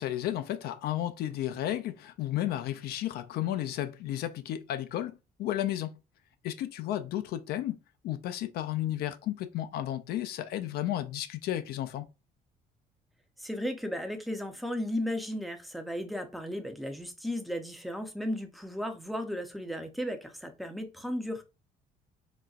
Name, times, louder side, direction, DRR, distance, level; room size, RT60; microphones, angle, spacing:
voice 1, 0.0-6.0 6.4-7.8 8.0-12.1, left 12 dB, 70° left, 0.4 m, -33 dB
voice 2, 13.4-21.4, equal, ahead, 0.5 m, -35 dB
4.1 x 2.2 x 2.3 m
cardioid pair, 110°, 17 cm